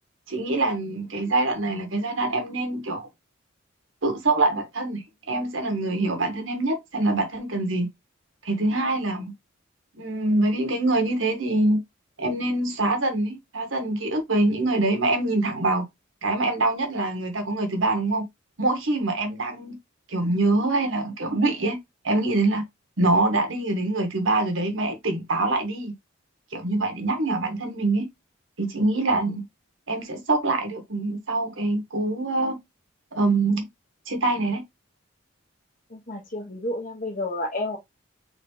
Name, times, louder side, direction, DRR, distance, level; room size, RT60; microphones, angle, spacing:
voice 1, 0.3-3.1 4.0-5.0 5.3-7.9 8.4-9.3 10.0-11.8 12.2-15.8 16.2-18.2 18.6-19.7 20.1-21.8 22.0-22.6 23.0-25.9 26.5-28.1 28.6-29.4 29.9-32.6 33.1-33.7 34.1-34.6, right 2 dB, 70° right, 1.6 m, -24 dB
voice 2, 35.9-37.8, left 1 dB, 40° left, 1.2 m, -30 dB
4.1 x 4.0 x 3.3 m
head